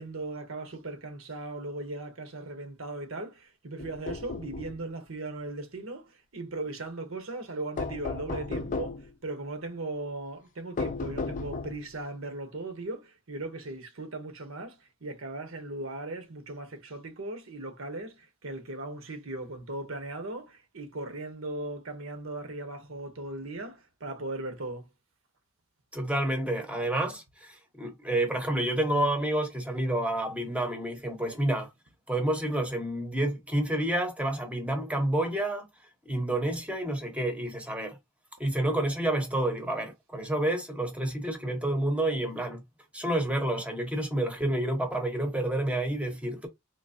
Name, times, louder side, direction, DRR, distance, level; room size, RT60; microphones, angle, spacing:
voice 1, 0.0-24.9, right 2 dB, 70° right, 1.0 m, -38 dB
sound 1, 3.8-4.8 7.8-9.1 10.8-11.9, left 3 dB, 35° left, 0.4 m, -34 dB
voice 2, 25.9-31.7 32.1-35.7 36.0-38.0 38.4-42.6 42.9-46.5, right 1 dB, 5° right, 0.8 m, -29 dB
3.8 x 3.0 x 2.8 m
head